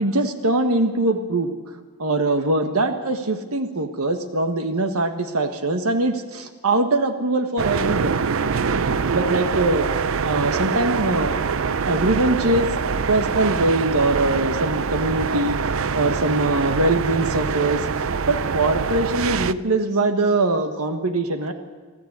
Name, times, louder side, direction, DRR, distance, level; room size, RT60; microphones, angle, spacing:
voice 1, 0.0-1.5 2.0-8.2 9.1-9.9 10.2-11.4 11.8-21.5, right 2 dB, 80° right, 7 dB, 1.4 m, -22 dB
sound 1, 7.6-19.5, right 5 dB, 60° right, 0.6 m, -24 dB
24.0 x 13.5 x 8.2 m, 1.5 s
head